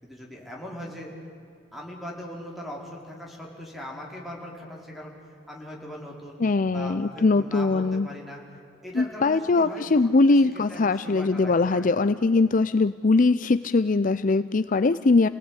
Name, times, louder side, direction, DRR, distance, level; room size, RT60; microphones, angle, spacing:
voice 1, 0.0-1.3 1.7-6.4 6.7-8.4 8.8-11.9, equal, ahead, -2 dB, 5.0 m, -40 dB
voice 2, 6.4-8.1 8.9-15.3, left 3 dB, 45° left, 13 dB, 0.5 m, -21 dB
29.0 x 18.0 x 9.9 m, 2.6 s
head